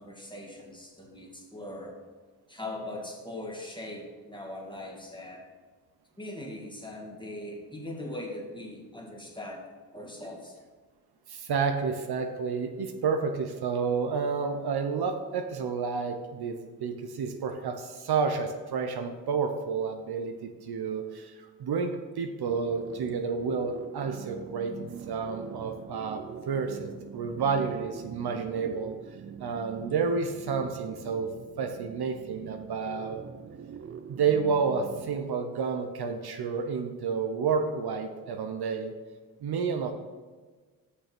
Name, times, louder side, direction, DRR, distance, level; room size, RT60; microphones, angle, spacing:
voice 1, 0.0-2.0 2.5-5.5 6.2-9.6 9.9-10.6, left 1 dB, 10° left, 0 dB, 2.0 m, -40 dB
voice 2, 11.3-29.0 29.4-33.2 34.1-38.9 39.4-39.9, right 5 dB, 60° right, 6 dB, 0.9 m, -30 dB
sound 1, 22.5-35.2, right 7 dB, 35° right, 0.5 m, -44 dB
6.3 x 5.6 x 6.1 m, 1.4 s
supercardioid pair, 60°, 42 cm